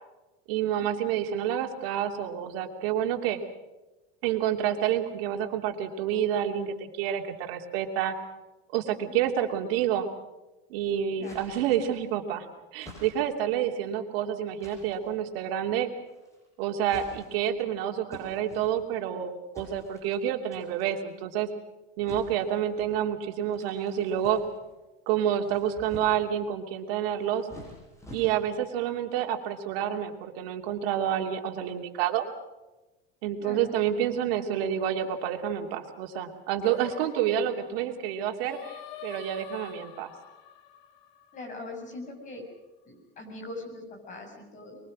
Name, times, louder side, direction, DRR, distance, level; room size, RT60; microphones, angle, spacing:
voice 1, 0.5-3.4 4.2-8.1 8.7-10.1 10.7-12.5 12.7-15.9 16.6-21.5 22.0-24.4 25.1-27.5 28.1-32.2 33.2-40.1, right 10 dB, 80° right, 4 dB, 3.1 m, -28 dB
sound 1, 11.2-12.1 12.8-13.5 14.6-15.1 16.1-16.5 16.8-17.6 18.1-19.1 19.5-20.2 20.5-20.9 22.1-22.9 23.5-24.8 25.3-26.4 27.1-28.7, left 1 dB, 10° left, 7.3 m, -48 dB
Singing, 36.6-41.9, left 11 dB, 85° left, 2.2 m, -46 dB
voice 2, 41.3-42.4 42.9-44.8, left 2 dB, 25° left, 2 dB, 6.9 m, -41 dB
24.0 x 23.0 x 6.3 m, 1.1 s
cardioid pair, 170°, 29 cm